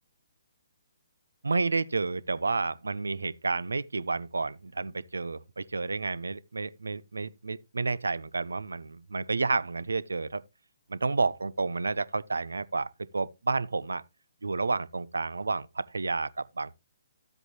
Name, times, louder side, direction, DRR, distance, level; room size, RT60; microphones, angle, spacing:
voice 1, 1.4-10.4 10.9-14.0 14.4-16.7, right 3 dB, 75° right, 0.6 m, -30 dB
12.5 x 7.9 x 3.0 m
figure-of-eight pair, 135°, 0 cm